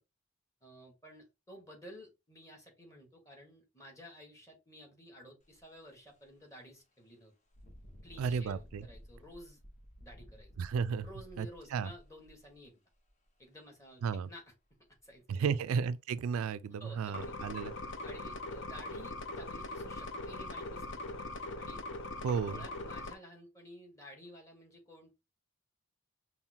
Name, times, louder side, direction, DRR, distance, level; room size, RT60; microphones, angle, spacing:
voice 1, 0.6-7.3 8.0-9.6 10.0-10.5 11.0-12.7 13.4-14.4 15.0-15.6 16.8-17.3 18.0-21.3 21.6-21.8 22.5-25.1, equal, 15° left, 1.4 m, -53 dB
Engine, 5.4-5.6 6.1-6.2 7.5-13.2 14.1-14.2 14.7-15.4 17.2-17.3 17.7-17.8 18.3-18.4 18.7-19.2 19.7-19.9 20.5-20.9, equal, 35° left, 1.0 m, -56 dB
voice 2, 8.2-8.9 10.6-11.1 11.4-11.5 11.7-11.9 14.0-14.3 15.3-17.7 22.2-22.6, right 6 dB, 85° right, 0.3 m, -33 dB
sound 1, 17.1-23.1, left 2 dB, 60° left, 0.6 m, -41 dB
5.5 x 2.1 x 2.8 m
head